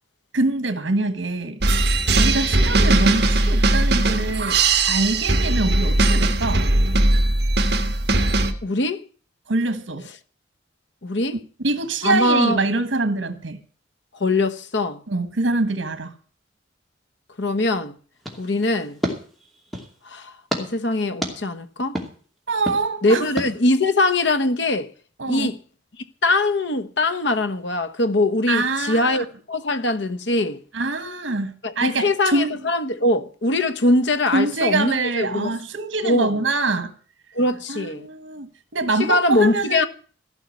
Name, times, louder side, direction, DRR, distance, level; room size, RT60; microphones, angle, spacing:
voice 1, 0.3-4.6 4.9-6.7 9.5-10.1 11.6-13.6 15.1-16.1 22.5-23.2 25.2-25.5 28.5-29.2 30.7-32.6 34.3-36.9 37.7-39.9, right 3 dB, 80° right, 1.5 m, -24 dB
sound 1, 1.6-8.5, right 2 dB, 60° right, 1.4 m, -19 dB
voice 2, 8.6-9.1 11.0-11.4 12.0-12.6 14.2-15.0 17.4-18.0 18.4-19.0 20.0-22.0 23.0-24.9 25.3-25.6 26.2-30.6 31.6-35.5 36.0-36.4 37.3-38.1 39.0-39.9, left 2 dB, 65° left, 1.2 m, -22 dB
sound 2, 18.2-20.0 20.5-20.6 21.2-21.3 22.0-22.1 22.7-22.8 23.4-23.5, equal, ahead, 2.5 m, -29 dB
15.5 x 5.8 x 9.5 m
head